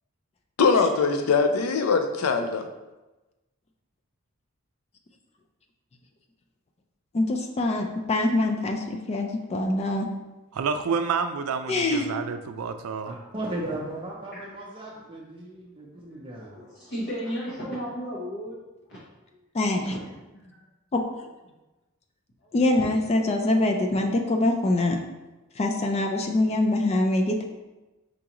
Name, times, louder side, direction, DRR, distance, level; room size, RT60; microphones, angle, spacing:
voice 1, 0.6-2.6, left 4 dB, 90° left, 7 dB, 0.5 m, -22 dB
voice 2, 7.1-10.1 11.7-12.1 19.5-19.9 20.9-21.0 22.5-25.0 25.6-27.4, left 2 dB, 30° left, 4 dB, 0.3 m, -24 dB
voice 3, 10.5-13.1, right 5 dB, 75° right, 9 dB, 0.4 m, -29 dB
voice 4, 13.1-16.6, right 1 dB, 25° right, -4 dB, 0.5 m, -36 dB
voice 5, 16.1-18.6 18.9-19.0 19.3-19.4 20.3-20.6 22.4-22.5 23.0-23.3, equal, 50° left, -6 dB, 0.8 m, -35 dB
4.9 x 3.6 x 2.9 m, 1.1 s
head